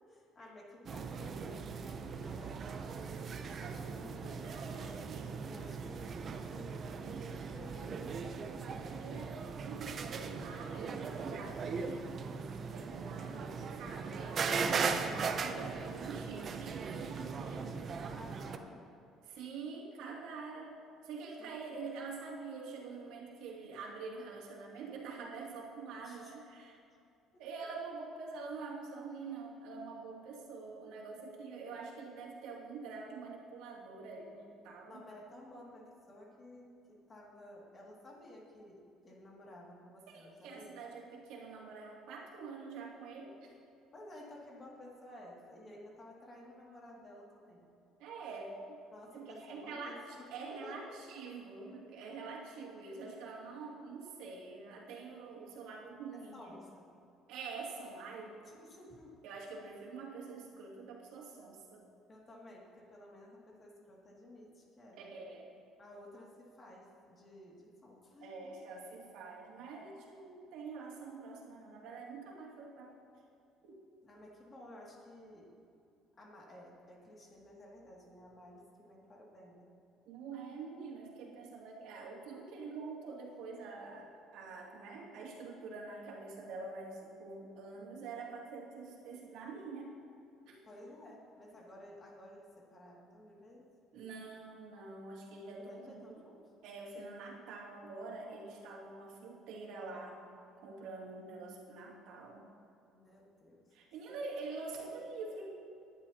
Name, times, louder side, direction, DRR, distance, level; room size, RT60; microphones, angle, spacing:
voice 1, 0.1-3.1 3.5-4.4 5.4-9.0 17.3-18.9 21.4-21.9 26.0-26.3 27.3-27.4 34.8-40.8 43.9-47.7 48.9-51.0 56.1-56.9 58.4-59.1 62.1-65.1 65.8-68.6 74.0-75.5 76.2-79.7 90.6-93.7 95.6-96.5 102.9-103.6, left 1 dB, 25° left, -3 dB, 2.4 m, -54 dB
sound 1, 0.8-18.6, right 5 dB, 35° right, 0.7 m, -39 dB
voice 2, 3.4-5.3 8.8-17.7 19.2-20.8 21.0-26.8 27.4-35.0 40.1-43.5 48.0-48.8 49.1-56.6 57.3-58.4 59.2-61.8 65.0-65.5 68.2-73.0 73.6-73.8 80.1-90.0 90.5-90.6 93.9-96.2 96.6-100.2 100.6-102.5 103.7-105.5, right 4 dB, 85° right, -3 dB, 2.6 m, -46 dB
19.0 x 11.0 x 2.9 m, 2.5 s
cardioid pair, 145°, 0 cm